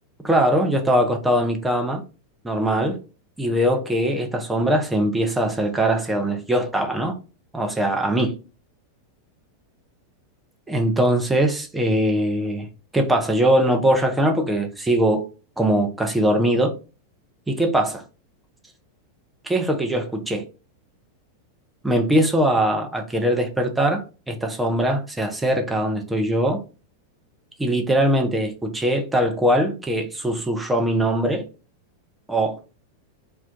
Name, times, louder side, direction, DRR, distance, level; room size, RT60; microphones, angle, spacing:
voice 1, 0.2-2.0 2.4-3.0 3.4-7.1 7.5-8.3 10.7-12.7 12.9-15.3 15.6-16.8 17.5-18.0 19.4-20.4 21.8-26.6 27.6-31.4 32.3-32.6, right 1 dB, 5° right, 0.5 m, -21 dB
2.4 x 2.2 x 3.6 m
figure-of-eight pair, 90°, 0 cm